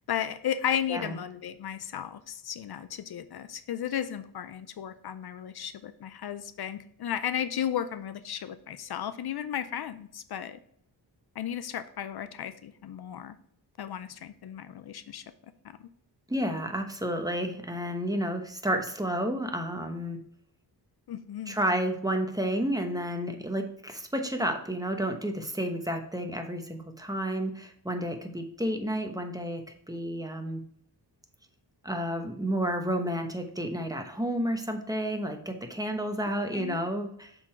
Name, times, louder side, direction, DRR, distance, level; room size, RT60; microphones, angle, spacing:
voice 1, 0.1-10.6 11.4-13.3 13.8-15.2 15.6-15.9 21.1-21.6 36.5-36.8, left 9 dB, 65° left, 12 dB, 0.5 m, -34 dB
voice 2, 16.3-20.2 21.5-30.6 31.8-37.3, equal, 10° right, 5 dB, 1.0 m, -31 dB
7.2 x 3.9 x 4.4 m, 0.66 s
cardioid pair, 80°, 41 cm